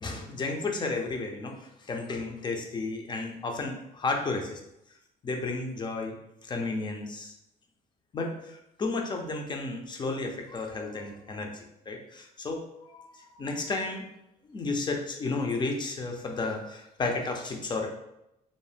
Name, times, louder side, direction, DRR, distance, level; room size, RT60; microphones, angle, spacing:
voice 1, 0.0-4.6 5.2-6.2 6.4-7.3 8.1-14.0 14.4-17.9, left 3 dB, 25° left, 3 dB, 0.5 m, -33 dB
2.6 x 2.0 x 3.3 m, 0.85 s
cardioid pair, 110°, 17 cm